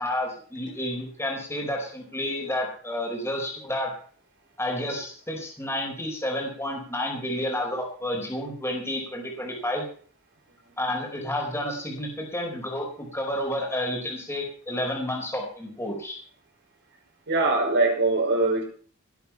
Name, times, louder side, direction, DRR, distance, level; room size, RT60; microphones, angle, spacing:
voice 1, 0.0-3.9 4.6-9.8 10.8-16.2, left 1 dB, 10° left, 1 dB, 4.6 m, -30 dB
voice 2, 17.3-18.6, right 2 dB, 55° right, 1 dB, 5.6 m, -22 dB
18.5 x 8.5 x 5.9 m, 0.43 s
head